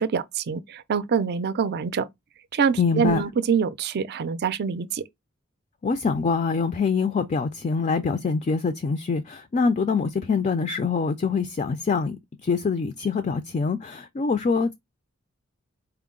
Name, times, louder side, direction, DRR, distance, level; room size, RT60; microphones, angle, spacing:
voice 1, 0.0-2.1 2.5-5.0, right 6 dB, 50° right, 0.4 m, -25 dB
voice 2, 2.8-3.2 5.8-14.7, left 5 dB, 35° left, 0.4 m, -24 dB
4.5 x 2.0 x 3.6 m
head